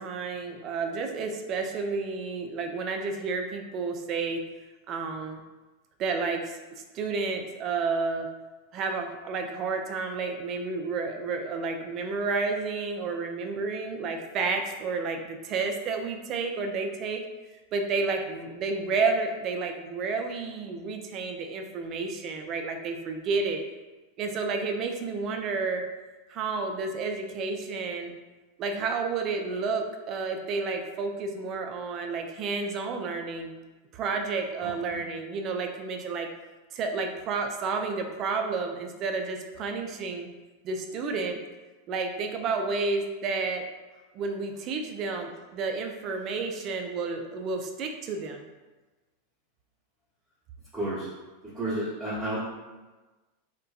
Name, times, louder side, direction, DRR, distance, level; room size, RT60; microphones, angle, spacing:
voice 1, 0.0-4.4 4.9-5.4 6.0-8.3 8.7-17.2 17.7-23.6 24.2-25.8 26.3-28.1 28.6-33.5 33.9-36.3 36.7-40.3 40.6-41.4 41.9-43.6 44.1-48.5, right 4 dB, 40° right, 4 dB, 0.3 m, -31 dB
voice 2, 50.7-51.1 51.4-52.4, right 1 dB, 10° right, -11 dB, 0.8 m, -31 dB
2.5 x 2.1 x 2.3 m, 1.2 s
figure-of-eight pair, 90°, 0 cm